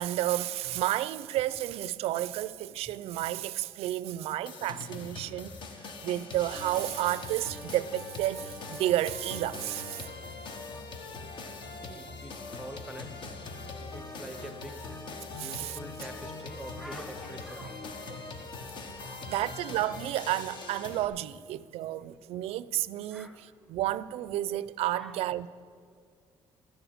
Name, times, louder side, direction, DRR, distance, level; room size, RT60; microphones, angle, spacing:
voice 1, 0.0-5.5 5.8-10.1 15.4-15.8 17.6-17.7 19.3-25.5, right 14 dB, 85° right, 0.4 m, -31 dB
sound 1, 4.5-21.1, left 3 dB, 50° left, 1.1 m, -42 dB
voice 2, 11.7-13.3 13.9-15.0 15.4-18.5 19.0-19.7 21.9-22.0 23.1-23.7 24.9-25.2, equal, ahead, 0.7 m, -46 dB
12.5 x 7.1 x 8.6 m
cardioid pair, 150°, 10 cm